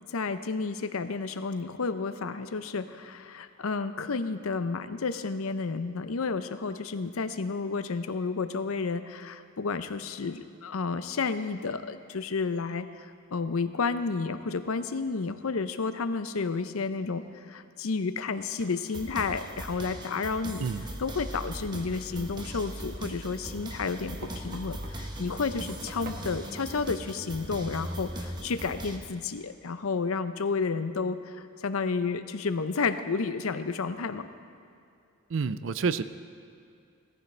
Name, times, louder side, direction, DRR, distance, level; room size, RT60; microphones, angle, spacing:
voice 1, 0.1-13.1 13.3-20.6 21.0-34.3, left 4 dB, 85° left, 11 dB, 0.6 m, -31 dB
sound 1, 18.2-18.3 18.6-18.9 21.3-21.7 22.3-25.0 25.5-26.6, right 3 dB, 40° right, 1.2 m, -47 dB
sound 2, 18.9-29.0, equal, 20° right, 0.9 m, -39 dB
voice 2, 35.3-36.0, right 5 dB, 60° right, 14 dB, 0.4 m, -28 dB
17.5 x 14.0 x 3.3 m, 2.5 s
head